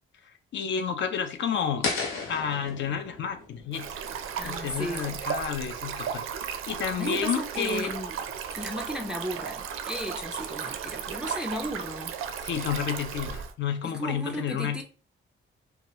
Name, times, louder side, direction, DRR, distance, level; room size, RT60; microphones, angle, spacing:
voice 1, 0.2-1.9 2.3-3.9 4.4-6.3 6.7-7.9 12.4-14.8, left 7 dB, 60° left, 0.5 m, -31 dB
sound 1, 1.8-4.9, left 4 dB, 90° left, 0.8 m, -35 dB
Stream, 3.7-13.5, right 7 dB, 90° right, 0.4 m, -35 dB
voice 2, 4.4-5.2 7.0-8.1 8.5-12.2 13.8-14.8, equal, 5° right, 0.3 m, -35 dB
2.8 x 2.3 x 3.0 m
wide cardioid pair, 155°, 21 cm